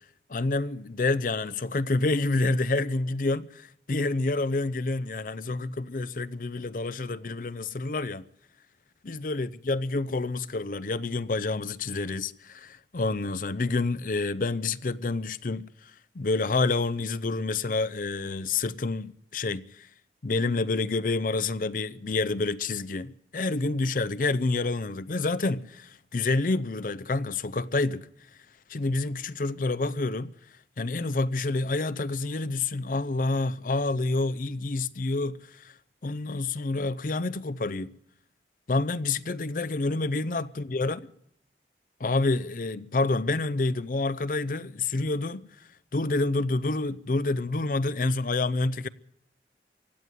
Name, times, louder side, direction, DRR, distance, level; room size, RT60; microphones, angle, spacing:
voice 1, 0.3-8.3 9.0-19.9 20.2-28.1 28.7-30.3 30.8-35.7 36.0-38.0 38.7-41.0 42.0-45.5 45.9-48.9, left 3 dB, 50° left, 0.5 m, -28 dB
16.5 x 9.3 x 9.3 m
head